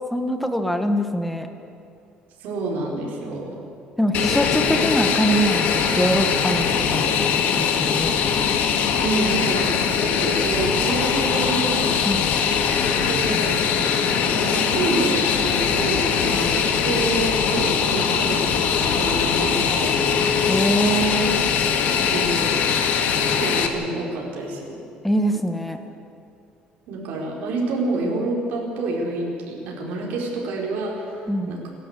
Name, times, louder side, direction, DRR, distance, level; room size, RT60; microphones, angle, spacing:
voice 1, 0.1-1.5 4.0-8.1 12.1-12.3 20.5-21.4 25.0-25.8 31.3-31.5, equal, ahead, 6 dB, 1.3 m, -23 dB
voice 2, 2.4-3.6 9.0-11.9 13.1-13.6 14.2-20.0 21.7-22.6 23.4-24.8 26.9-31.2 31.5-31.7, right 2 dB, 65° right, -2 dB, 5.2 m, -28 dB
Fixed-wing aircraft airplane, 4.1-23.7, left 7 dB, 60° left, 1.9 m, -21 dB
30.0 x 12.0 x 8.3 m, 2.5 s
cardioid pair, 175°, 3 cm